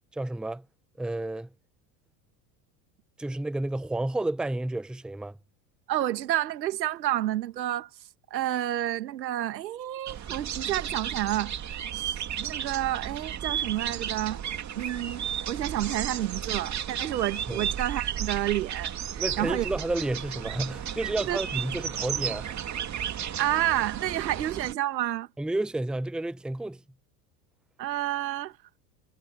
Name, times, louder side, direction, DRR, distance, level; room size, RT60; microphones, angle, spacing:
voice 1, 0.1-0.6 1.0-1.5 3.2-5.4 17.5-17.7 19.2-22.5 25.4-26.8, right 2 dB, ahead, 0.8 m, -31 dB
voice 2, 5.9-7.9 8.3-11.6 11.9-14.4 14.8-19.7 21.3-21.4 23.4-25.3 27.8-28.5, right 13 dB, 85° right, 2.1 m, -30 dB
sound 1, 10.1-24.7, right 9 dB, 35° right, 2.8 m, -33 dB
hypercardioid pair, 80°, 50 cm